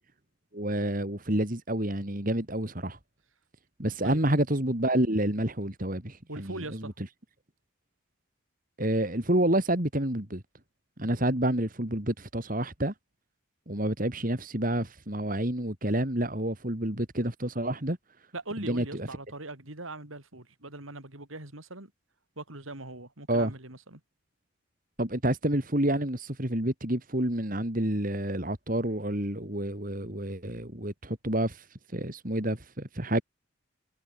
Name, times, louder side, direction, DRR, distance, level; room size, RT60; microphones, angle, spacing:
voice 1, 0.5-3.0 3.8-6.9 8.8-10.4 11.0-12.9 13.7-18.0 18.6-19.1 23.3-23.5 25.0-31.6 31.9-33.2, right 1 dB, 40° right, 3.1 m, -29 dB
voice 2, 6.3-6.9 18.3-21.9 22.4-24.0, right 2 dB, 80° right, 4.8 m, -41 dB
head